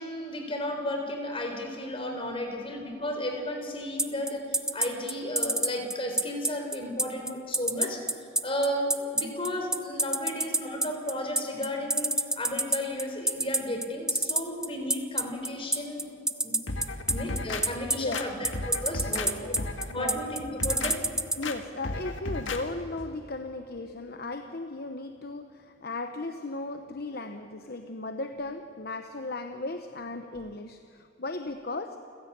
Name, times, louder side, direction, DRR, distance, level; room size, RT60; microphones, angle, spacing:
voice 1, 0.0-8.0 8.4-16.1 16.4-16.6 17.0-19.3 19.9-21.0, left 1 dB, 25° left, 4 dB, 4.0 m, -33 dB
sound 1, 4.0-21.4, right 1 dB, 5° right, 0.6 m, -26 dB
sound 2, 16.7-17.6 18.1-19.3 19.6-19.9 20.4-20.9 21.4-21.6 21.8-22.6 23.0-23.1, left 2 dB, 70° left, 1.9 m, -34 dB
voice 2, 18.0-18.3 19.4-20.2 21.4-32.0, left 2 dB, 50° left, 7 dB, 1.0 m, -36 dB
29.0 x 16.0 x 8.7 m, 2.7 s
head